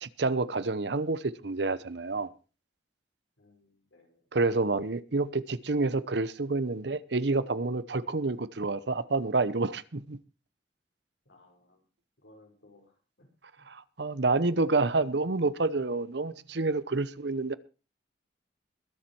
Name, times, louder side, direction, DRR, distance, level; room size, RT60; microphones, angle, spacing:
voice 1, 0.0-2.3 4.3-10.2 13.7-17.6, right 3 dB, 65° right, 0.8 m, -28 dB
voice 2, 3.4-4.3 11.3-11.8 12.2-13.3 13.6-13.7, left 2 dB, 90° left, 5.5 m, -60 dB
22.0 x 7.4 x 4.6 m
head